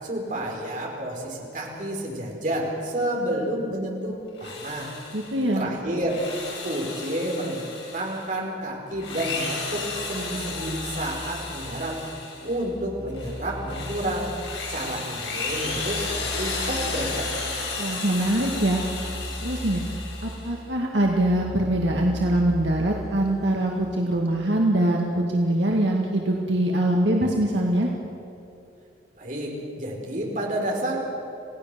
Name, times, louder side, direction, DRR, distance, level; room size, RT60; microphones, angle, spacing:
voice 1, 0.0-4.9 5.5-6.2 6.6-7.6 7.9-12.0 12.4-14.3 14.7-17.3 29.2-31.0, right 1 dB, 45° right, -1 dB, 4.7 m, -30 dB
Drill, 4.3-5.4 5.9-8.3 8.9-12.6 13.1-20.6, left 4 dB, 70° left, 6.4 m, -34 dB
voice 2, 5.1-5.7 17.8-18.8 19.4-19.8 20.2-27.9, right 1 dB, 75° right, -1 dB, 2.1 m, -23 dB
sound 1, 8.9-24.0, equal, 15° left, 5.3 m, -39 dB
29.0 x 17.5 x 6.9 m, 2.8 s
head